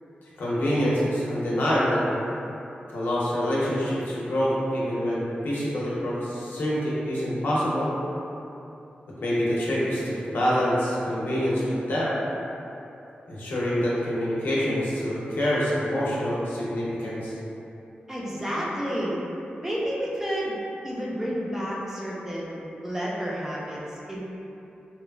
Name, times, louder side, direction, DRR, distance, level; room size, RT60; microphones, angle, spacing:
voice 1, 0.4-2.1 2.9-7.9 9.2-12.1 13.3-17.4, equal, 80° left, -7 dB, 0.6 m, -26 dB
voice 2, 18.1-19.2 19.6-20.6 20.8-23.8 24.1-24.2, equal, 10° right, -6 dB, 0.4 m, -30 dB
2.9 x 2.3 x 2.3 m, 2.9 s
wide cardioid pair, 105°, 3 cm